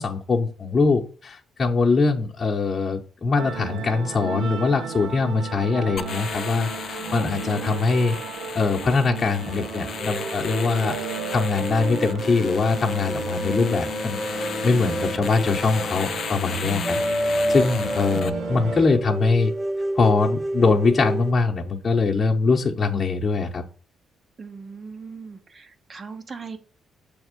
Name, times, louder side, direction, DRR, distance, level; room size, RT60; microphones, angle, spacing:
voice 1, 0.0-8.2 8.5-11.0 11.3-19.5 19.9-23.6, left 4 dB, 35° left, 1.0 m, -22 dB
sound 1, 3.3-18.9, right 6 dB, 85° right, 0.8 m, -35 dB
sound 2, 6.0-18.3, left 7 dB, 55° left, 0.6 m, -34 dB
sound 3, 10.0-21.3, right 1 dB, 15° right, 0.4 m, -29 dB
voice 2, 24.4-26.6, right 5 dB, 35° right, 1.0 m, -39 dB
7.0 x 3.5 x 5.2 m
cardioid pair, 90°, 0 cm